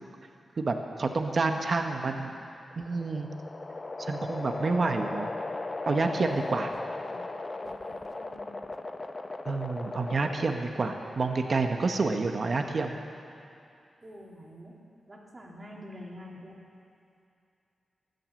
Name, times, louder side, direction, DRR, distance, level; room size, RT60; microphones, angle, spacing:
voice 1, 0.6-2.3 2.8-3.3 4.1-5.3 5.9-6.7 9.5-13.0, right 3 dB, 50° right, 5 dB, 1.0 m, -28 dB
voice 2, 1.4-2.4 6.5-8.6 14.0-14.8 15.1-16.6, equal, 35° right, -2 dB, 2.8 m, -48 dB
sound 1, 2.6-10.8, left 2 dB, 35° left, 0.9 m, -37 dB
14.0 x 10.5 x 7.6 m, 2.6 s
cardioid pair, 75°, 0 cm